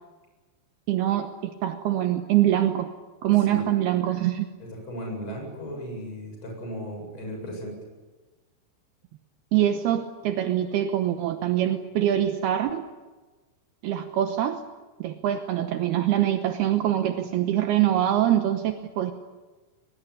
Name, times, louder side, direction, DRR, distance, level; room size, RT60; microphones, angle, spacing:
voice 1, 0.9-2.9 3.2-4.5 9.5-12.8 13.8-14.6 15.0-19.1, right 12 dB, 75° right, 7 dB, 2.3 m, -24 dB
voice 2, 4.6-7.8, equal, 25° left, 1 dB, 8.2 m, -36 dB
23.0 x 23.0 x 9.8 m, 1.3 s
omnidirectional pair, 6.0 m